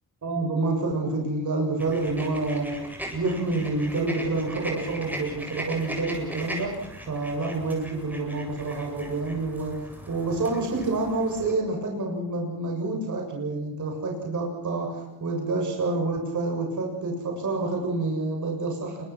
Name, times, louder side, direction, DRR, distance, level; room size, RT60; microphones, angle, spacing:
voice 1, 0.2-19.0, right 3 dB, 50° right, 0 dB, 7.4 m, -28 dB
sound 1, 1.8-11.5, equal, 5° right, 7.9 m, -39 dB
28.0 x 24.5 x 6.1 m, 0.97 s
cardioid pair, 105°, 37 cm